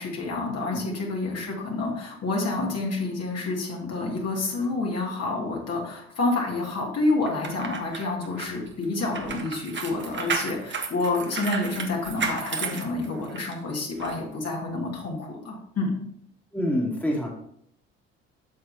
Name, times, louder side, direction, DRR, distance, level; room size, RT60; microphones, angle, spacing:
voice 1, 0.0-16.0, left 2 dB, 50° left, -2 dB, 2.2 m, -28 dB
sound 1, 7.3-13.5 14.0-14.1, right 4 dB, 35° right, 1.2 m, -33 dB
voice 2, 16.5-17.3, equal, 5° left, -1 dB, 2.0 m, -26 dB
8.6 x 6.1 x 2.7 m, 0.71 s
hypercardioid pair, 55°, 33 cm